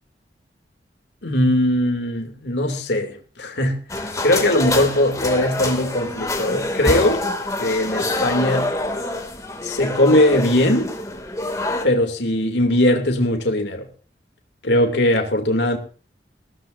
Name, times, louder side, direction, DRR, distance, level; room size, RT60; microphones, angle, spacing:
voice 1, 1.2-7.2 7.6-8.7 9.6-10.9 11.8-13.9 14.6-15.8, left 1 dB, 75° left, 2.7 m, -20 dB
sound 1, 3.9-11.8, left 2 dB, 20° left, 2.4 m, -26 dB
21.0 x 16.5 x 2.6 m
head